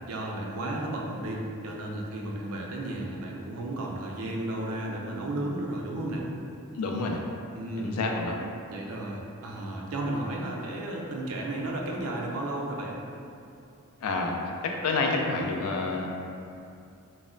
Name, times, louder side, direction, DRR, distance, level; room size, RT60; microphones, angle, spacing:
voice 1, 0.1-6.3 7.5-8.0 8.7-13.0, right 1 dB, 75° right, -1 dB, 0.4 m, -33 dB
voice 2, 6.8-7.2 7.8-8.4 14.0-14.4 14.6-16.1, left 3 dB, 85° left, 1 dB, 0.4 m, -28 dB
2.1 x 2.1 x 3.7 m, 2.6 s
head